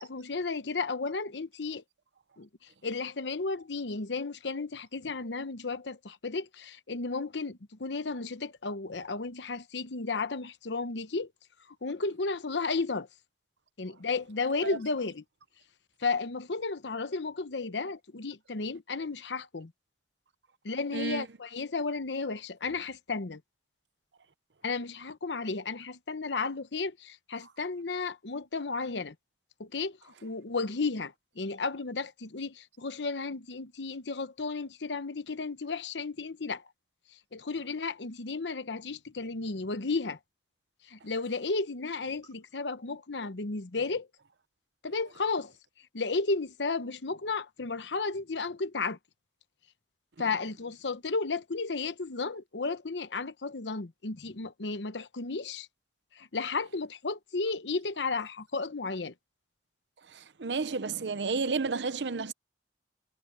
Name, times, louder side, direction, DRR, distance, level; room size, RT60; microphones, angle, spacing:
voice 1, 0.0-1.8 2.4-2.5 2.8-11.3 11.8-13.1 13.8-15.2 16.0-19.7 20.6-23.4 24.6-29.1 29.6-36.6 37.3-40.2 40.9-44.1 44.8-45.5 45.9-49.0 50.2-55.7 56.1-59.1, left 4 dB, 85° left, 1.0 m, -33 dB
voice 2, 20.9-21.3 60.1-62.3, right 4 dB, 85° right, 0.8 m, -31 dB
head